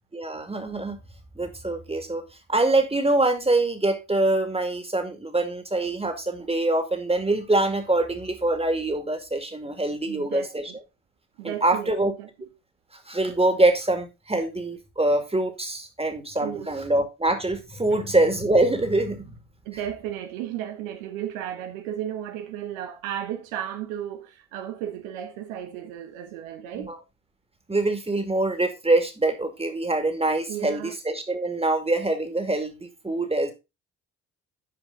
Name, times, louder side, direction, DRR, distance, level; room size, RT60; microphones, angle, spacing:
voice 1, 0.1-1.0 1.4-2.2 2.5-10.7 11.4-12.1 13.1-19.4 26.7-27.0 27.7-33.5, right 2 dB, 15° right, 2.3 m, -24 dB
voice 2, 10.0-10.8 11.4-12.3 16.4-16.7 17.9-18.1 19.6-26.9 30.5-31.0, right 10 dB, 85° right, 1.1 m, -34 dB
9.3 x 4.9 x 3.9 m
hypercardioid pair, 45°, 39 cm